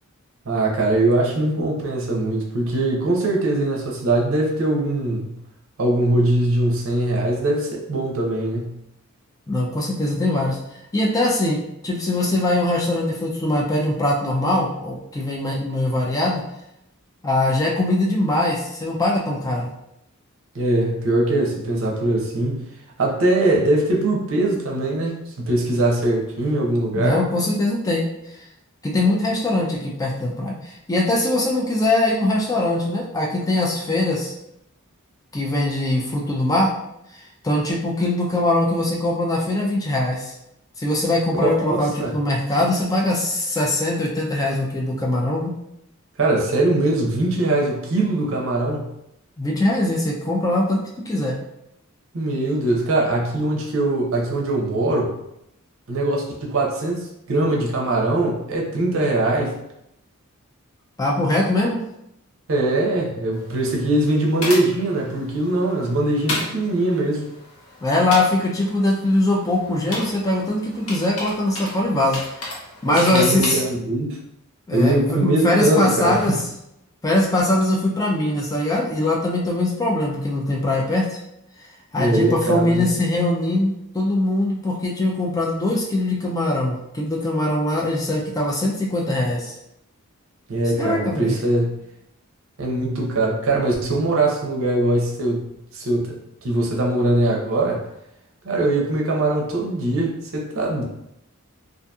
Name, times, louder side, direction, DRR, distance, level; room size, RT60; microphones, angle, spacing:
voice 1, 0.4-5.4 5.8-8.8 20.5-22.7 23.0-27.2 41.4-42.1 46.2-48.9 52.1-55.2 55.9-59.6 62.5-67.3 72.9-74.2 74.7-76.2 82.0-82.9 90.5-91.8 92.6-95.5 95.7-97.8 98.4-100.8, right 2 dB, 65° right, -1 dB, 0.6 m, -21 dB
voice 2, 9.5-10.6 10.9-16.4 17.2-19.7 26.9-28.5 28.8-34.3 35.3-36.7 37.1-40.3 40.8-45.5 49.4-51.4 61.0-61.8 67.8-72.5 72.8-73.6 74.7-76.4 77.0-81.2 81.9-89.5 90.8-91.4, left 1 dB, 15° left, -1 dB, 0.3 m, -22 dB
sound 1, 63.3-73.8, left 1 dB, 80° left, 0.8 m, -34 dB
2.7 x 2.5 x 2.3 m, 0.81 s
head